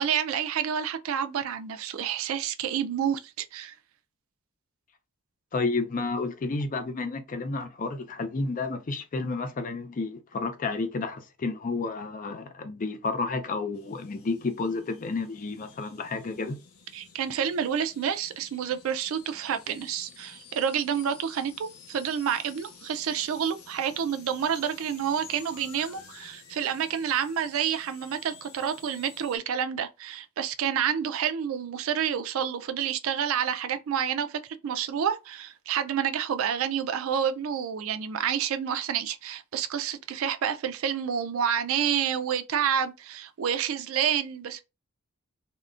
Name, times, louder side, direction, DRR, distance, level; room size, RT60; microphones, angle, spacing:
voice 1, 0.0-3.7 16.9-44.6, right 8 dB, 70° right, 0.3 m, -29 dB
voice 2, 5.5-16.6, left 3 dB, 40° left, 0.4 m, -31 dB
sound 1, 13.7-29.4, left 6 dB, 90° left, 0.7 m, -51 dB
3.6 x 2.1 x 2.4 m
head